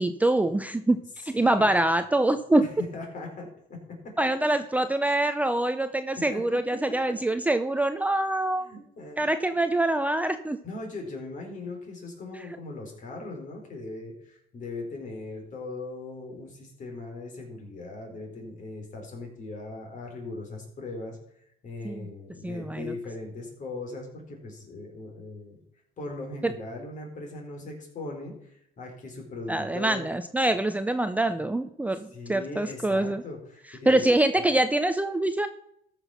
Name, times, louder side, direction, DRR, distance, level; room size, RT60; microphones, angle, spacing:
voice 1, 0.0-2.7 4.2-8.7 9.2-10.6 21.8-22.1 22.4-22.9 26.4-26.5 29.5-33.2 33.9-35.5, right 1 dB, 10° right, 9 dB, 0.6 m, -25 dB
voice 2, 1.3-1.7 2.6-4.1 6.1-6.4 8.6-9.2 10.6-21.2 21.6-25.6 26.0-30.1 32.1-34.1, left 2 dB, 50° left, 2 dB, 4.1 m, -39 dB
14.0 x 6.2 x 5.8 m, 0.74 s
cardioid pair, 110°, 17 cm